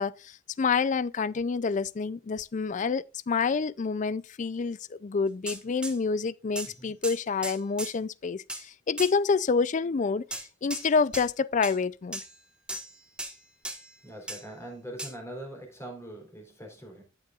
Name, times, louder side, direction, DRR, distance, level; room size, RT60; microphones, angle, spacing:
voice 1, 0.0-12.2, left 5 dB, 40° left, 0.4 m, -28 dB
sound 1, 5.5-6.0 6.5-6.7 7.0-7.9 8.5-8.6 9.0-9.1 10.3-10.9 11.1-11.3 11.6-11.8 12.1-12.3 12.7-12.9 13.2-13.3 13.6-13.9 14.3-14.4 15.0-15.1, right 1 dB, 5° right, 1.6 m, -36 dB
voice 2, 6.6-7.0 14.0-17.0, right 1 dB, 15° left, 3.6 m, -42 dB
13.0 x 7.6 x 2.4 m
head